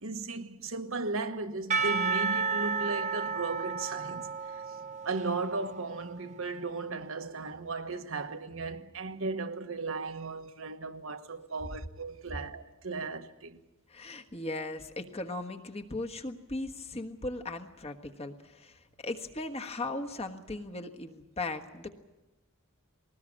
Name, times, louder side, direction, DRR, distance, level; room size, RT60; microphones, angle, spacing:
voice 1, 0.0-4.6 5.0-13.6, right 3 dB, 70° right, 1.3 m, -36 dB
Percussion / Church bell, 1.7-6.5, right 5 dB, 35° right, 0.9 m, -32 dB
voice 2, 13.9-21.9, left 2 dB, 30° left, 1.4 m, -38 dB
20.5 x 19.0 x 8.7 m
head